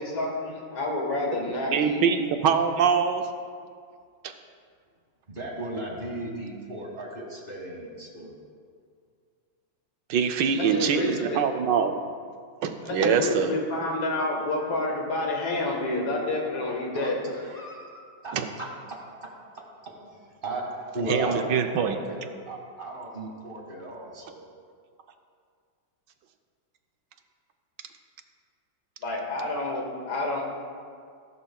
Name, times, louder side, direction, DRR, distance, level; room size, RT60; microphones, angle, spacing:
voice 1, 0.0-2.0 10.7-11.4 12.9-17.2 29.0-30.4, left 2 dB, 90° left, -1 dB, 2.7 m, -29 dB
voice 2, 1.7-3.2 4.2-4.3 10.1-12.0 12.6-13.5 18.3-18.5 21.1-22.0, right 7 dB, 70° right, 6 dB, 1.3 m, -24 dB
voice 3, 5.3-8.3 16.9-18.7 20.4-22.2 22.5-24.5, right 1 dB, 25° right, -1 dB, 1.9 m, -35 dB
17.5 x 11.5 x 2.3 m, 2.1 s
omnidirectional pair, 2.2 m